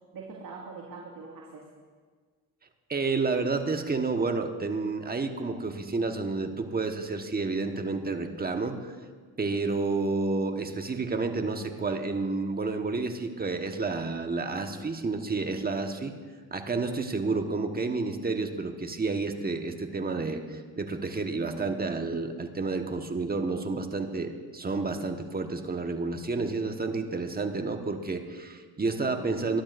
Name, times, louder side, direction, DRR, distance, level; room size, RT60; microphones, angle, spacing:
voice 1, 0.1-1.7 28.9-29.6, right 4 dB, 55° right, -3 dB, 2.2 m, -43 dB
voice 2, 2.9-8.9 9.4-16.1 16.5-29.6, right 3 dB, 25° right, 5 dB, 1.3 m, -30 dB
20.5 x 11.5 x 2.6 m, 1.5 s
supercardioid pair, 75°, 38 cm